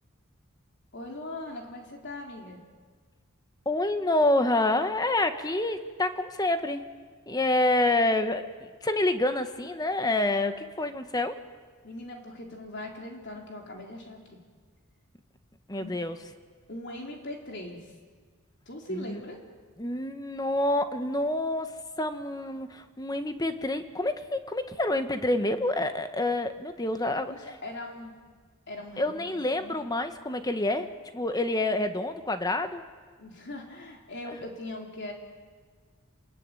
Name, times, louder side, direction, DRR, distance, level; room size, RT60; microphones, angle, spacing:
voice 1, 0.9-2.6 11.8-14.4 15.8-16.0 16.7-17.9 18.7-19.4 27.3-28.1 28.7-29.9 33.2-35.1, left 1 dB, 55° left, 1 dB, 3.9 m, -40 dB
voice 2, 3.6-6.9 7.3-11.4 15.7-16.2 18.9-19.2 19.8-21.7 22.0-27.3 29.0-32.8 34.3-34.4, left 2 dB, 20° left, 8 dB, 1.3 m, -27 dB
28.5 x 20.5 x 9.1 m, 1.5 s
head